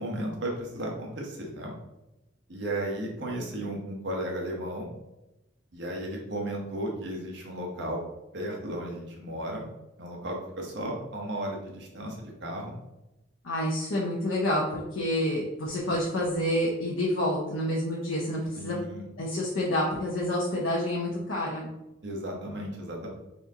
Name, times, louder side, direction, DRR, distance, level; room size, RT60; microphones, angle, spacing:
voice 1, 0.0-1.7 2.5-4.9 5.7-8.0 8.3-9.7 10.0-12.7 18.5-19.1 22.0-23.1, right 1 dB, 60° right, 0 dB, 1.0 m, -34 dB
voice 2, 13.4-18.8 19.2-21.7, left 1 dB, 85° left, -4 dB, 0.8 m, -28 dB
4.3 x 2.8 x 3.6 m, 0.93 s
head